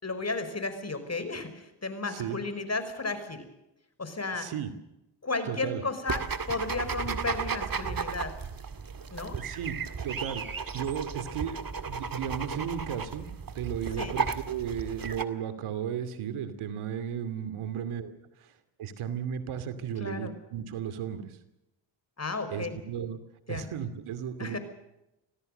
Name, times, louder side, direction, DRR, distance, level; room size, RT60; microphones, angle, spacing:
voice 1, 0.0-3.4 4.0-4.5 5.2-8.3 9.1-9.4 14.0-14.1 20.0-20.3 22.2-22.8 23.5-23.7 24.4-24.6, left 3 dB, 30° left, 10 dB, 5.6 m, -33 dB
voice 2, 4.3-4.7 5.5-5.8 9.3-13.3 13.5-18.1 18.4-18.5 18.8-21.4 22.5-23.2 23.5-24.6, right 8 dB, 85° right, 11 dB, 2.7 m, -35 dB
sound 1, 6.1-15.2, right 5 dB, 45° right, 2.1 m, -34 dB
26.0 x 17.0 x 6.7 m, 0.89 s
cardioid pair, 65°, 48 cm